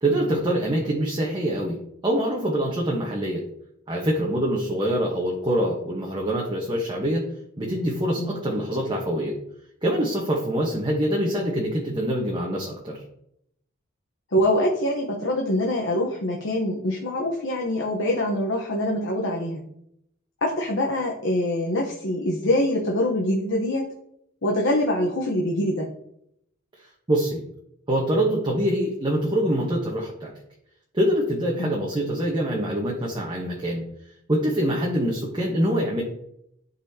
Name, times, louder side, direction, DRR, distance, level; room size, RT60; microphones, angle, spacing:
voice 1, 0.0-3.4 3.9-7.2 7.6-9.3 9.8-13.0 27.1-27.4 27.9-30.3 30.9-33.8 34.3-36.0, right 1 dB, 25° right, -2 dB, 1.0 m, -25 dB
voice 2, 14.3-19.6 20.4-23.9 24.4-25.9 31.6-31.8, left 1 dB, 65° left, -1 dB, 1.0 m, -24 dB
11.5 x 4.1 x 2.8 m, 0.75 s
head